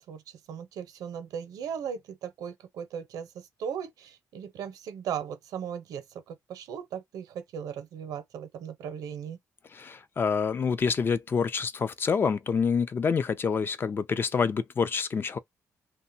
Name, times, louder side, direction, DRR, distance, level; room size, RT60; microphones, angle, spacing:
voice 1, 0.0-9.4, right 8 dB, 85° right, 0.7 m, -37 dB
voice 2, 9.7-15.4, left 5 dB, 35° left, 0.4 m, -27 dB
2.8 x 2.2 x 2.6 m
cardioid pair, 110°, 6 cm